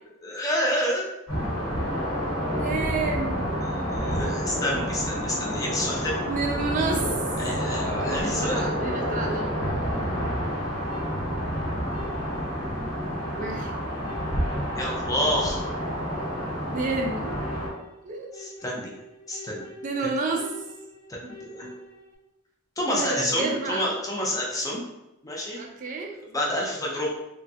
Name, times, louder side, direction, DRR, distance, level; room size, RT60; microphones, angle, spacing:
voice 1, 0.2-1.1 3.6-6.2 7.4-8.6 14.8-15.6 18.4-18.9 19.3-19.6 21.1-21.7 22.8-24.8 25.2-25.6 26.3-27.1, left 1 dB, 15° left, -2 dB, 0.5 m, -28 dB
sound 1, 1.3-17.7, equal, 70° left, 1.1 m, -29 dB
voice 2, 2.5-3.7 6.3-7.2 7.9-9.7 13.4-13.7 16.7-17.4 18.0-18.4 19.8-20.6 21.2-21.3 21.6-21.8 22.9-23.9 25.5-26.1, right 3 dB, 40° right, 1 dB, 0.3 m, -30 dB
sound 2, 5.9-22.1, left 2 dB, 90° left, 0.6 m, -46 dB
3.1 x 2.2 x 2.7 m, 0.93 s
head